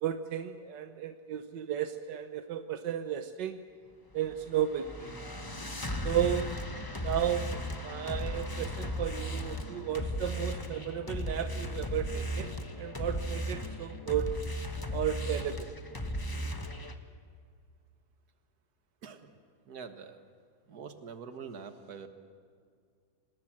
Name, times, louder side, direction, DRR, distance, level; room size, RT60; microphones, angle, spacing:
voice 1, 0.0-3.6 4.1-5.2 6.0-6.5 7.0-14.3 14.9-15.7, right 10 dB, 85° right, 9 dB, 1.5 m, -34 dB
sound 1, 4.3-16.9, equal, 15° left, 1.0 m, -36 dB
voice 2, 19.7-20.2 20.7-22.1, right 6 dB, 60° right, 8 dB, 2.0 m, -45 dB
26.5 x 20.0 x 7.5 m, 2.1 s
omnidirectional pair, 1.9 m